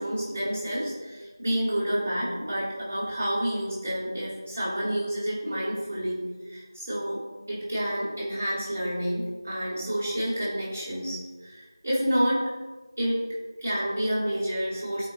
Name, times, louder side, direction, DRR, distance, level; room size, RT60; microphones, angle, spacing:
voice 1, 0.0-12.5 13.0-13.3 13.6-15.1, equal, 15° right, -9 dB, 1.4 m, -29 dB
12.5 x 4.7 x 2.4 m, 1.3 s
figure-of-eight pair, 180°, 2 cm